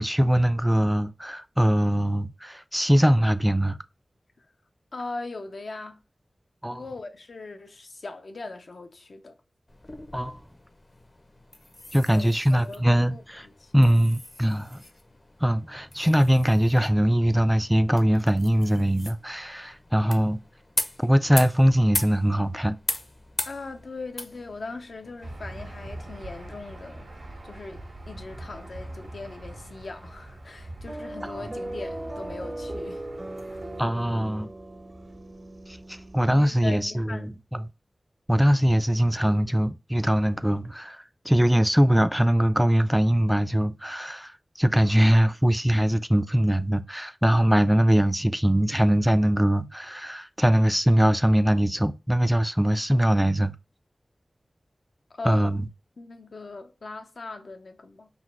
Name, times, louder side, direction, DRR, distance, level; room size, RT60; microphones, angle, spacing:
voice 1, 0.0-3.8 6.6-6.8 10.1-10.4 11.9-13.4 13.7-14.8 15.4-20.4 21.0-22.8 33.8-34.5 35.7-37.6 38.3-53.5 55.3-55.7, equal, 5° right, 0.3 m, -22 dB
voice 2, 4.9-6.0 6.7-9.4 12.1-13.7 23.4-33.1 36.2-37.4 55.1-55.5 56.0-58.1, left 3 dB, 75° left, 0.6 m, -39 dB
sound 1, 9.7-26.5, left 1 dB, 40° left, 0.6 m, -39 dB
Aircraft / Engine, 25.2-33.8, right 1 dB, 85° right, 1.3 m, -43 dB
sound 2, 30.9-36.2, right 1 dB, 50° right, 0.7 m, -38 dB
4.0 x 2.4 x 4.2 m
wide cardioid pair, 60°, 0 cm